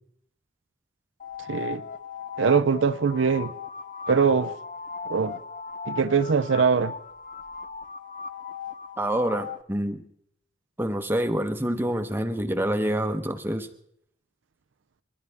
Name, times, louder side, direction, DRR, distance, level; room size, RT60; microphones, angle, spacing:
sound 1, 1.2-9.6, left 6 dB, 40° left, 0.5 m, -37 dB
voice 1, 1.5-1.8 2.4-3.5 4.1-4.5 5.1-5.4 5.9-7.0, right 5 dB, 75° right, 0.5 m, -22 dB
voice 2, 9.0-10.0 10.8-13.7, right 1 dB, 10° right, 0.9 m, -27 dB
29.5 x 12.0 x 3.4 m
head